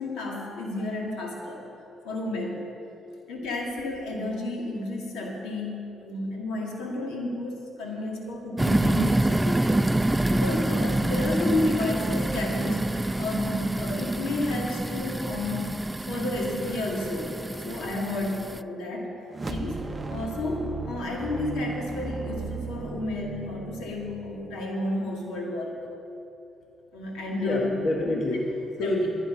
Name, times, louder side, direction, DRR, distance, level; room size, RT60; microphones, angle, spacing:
voice 1, 0.0-1.7 2.0-2.7 3.3-9.7 10.3-15.7 16.1-17.4 17.6-19.1 19.5-25.8 26.9-27.7 28.0-28.1 28.8-29.0, left 2 dB, 90° left, -1 dB, 2.5 m, -31 dB
sound 1, 8.6-18.6, right 1 dB, 10° right, 0.3 m, -26 dB
sound 2, 19.3-24.7, right 3 dB, 25° right, 0.7 m, -36 dB
voice 2, 27.3-29.1, left 1 dB, 60° left, -1 dB, 1.6 m, -27 dB
15.0 x 10.0 x 5.6 m, 2.7 s
cardioid pair, 90°, 0 cm